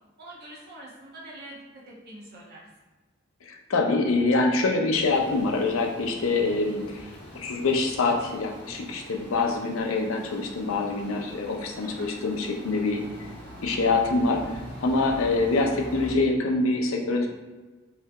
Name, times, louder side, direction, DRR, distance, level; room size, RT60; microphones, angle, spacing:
voice 1, 0.2-1.6 1.9-2.6 11.8-12.1 15.0-15.2, right 1 dB, 50° right, -4 dB, 1.0 m, -44 dB
voice 2, 3.5-13.0 13.6-14.4 14.8-17.3, left 3 dB, 75° left, 2 dB, 0.5 m, -25 dB
sound 1, 4.9-16.1, equal, 10° left, 1.4 m, -44 dB
3.3 x 2.8 x 3.4 m, 1.2 s
head